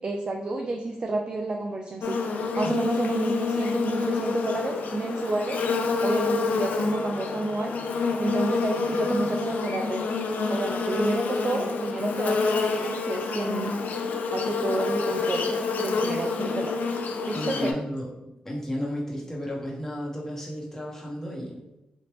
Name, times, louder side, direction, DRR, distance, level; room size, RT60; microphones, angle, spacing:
voice 1, 0.0-5.6 6.0-10.1 10.5-13.7 14.3-17.0 17.2-17.8, right 2 dB, 35° right, 3 dB, 0.3 m, -30 dB
Buzz, 2.0-17.7, left 4 dB, 70° left, 0.4 m, -28 dB
voice 2, 17.3-18.1 18.4-21.6, equal, 15° left, -3 dB, 1.1 m, -33 dB
3.2 x 2.5 x 3.0 m, 0.94 s
cardioid pair, 80°, 3 cm